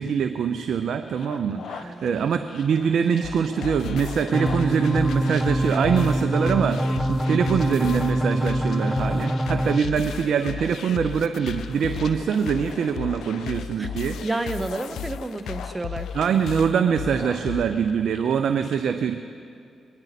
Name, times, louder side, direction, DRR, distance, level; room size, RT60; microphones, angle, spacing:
voice 1, 0.0-6.8 7.1-14.2 16.1-19.2, right 7 dB, 70° right, 8 dB, 0.6 m, -24 dB
sound 1, 1.1-18.7, left 6 dB, 65° left, 1.0 m, -45 dB
voice 2, 1.5-2.2 13.8-13.9 14.2-16.1, right 2 dB, 25° right, 10 dB, 0.9 m, -31 dB
sound 2, 3.2-17.6, left 9 dB, 80° left, 0.3 m, -35 dB
sound 3, 4.3-9.8, right 1 dB, ahead, 0.4 m, -25 dB
22.0 x 10.5 x 4.1 m, 2.4 s
supercardioid pair, 60°, 0 cm